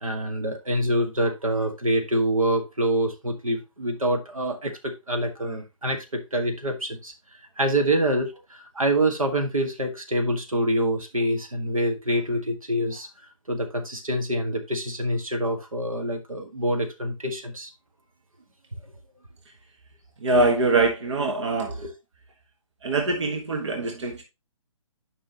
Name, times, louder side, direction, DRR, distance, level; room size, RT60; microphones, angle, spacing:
voice 1, 0.0-7.1 7.6-13.1 13.5-17.7 21.7-21.9, right 1 dB, 80° right, 1.8 m, -26 dB
voice 2, 20.2-21.7 22.8-24.2, right 3 dB, 60° right, 1.3 m, -23 dB
8.8 x 5.5 x 2.9 m
figure-of-eight pair, 135°, 17 cm